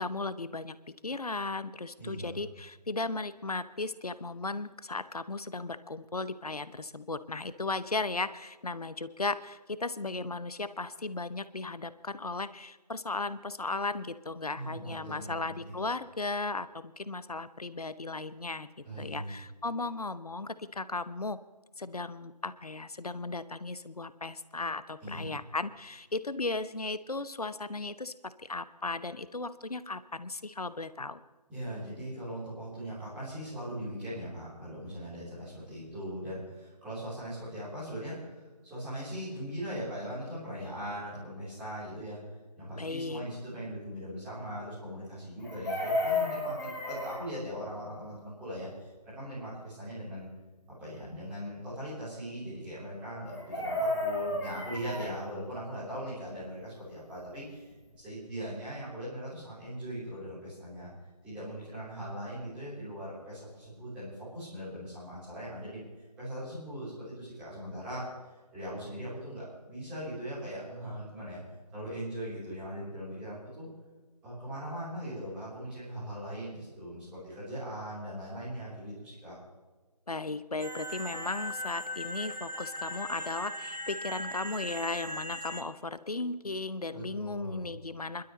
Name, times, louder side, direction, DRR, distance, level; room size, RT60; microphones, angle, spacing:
voice 1, 0.0-18.7 19.0-21.4 21.8-31.2 42.8-43.3 80.1-88.2, left 3 dB, 65° left, 14 dB, 0.8 m, -36 dB
voice 2, 2.0-2.4 14.5-15.3 15.7-15.8 18.8-19.3 25.0-25.3 31.5-42.2 42.6-48.7 49.0-50.3 50.8-57.6 58.0-60.9 61.2-65.8 66.2-68.1 68.5-71.4 71.7-73.7 74.2-79.4 86.9-87.6, equal, 5° right, -11 dB, 3.7 m, -40 dB
Chicken rooster, 45.4-47.2 53.3-55.1 57.3-57.4 57.7-58.0, left 2 dB, 35° left, 5.3 m, -32 dB
sound 1, 80.6-85.6, equal, 85° right, 1.4 m, -39 dB
25.5 x 12.5 x 3.2 m, 1.3 s
figure-of-eight pair, 160°, 21 cm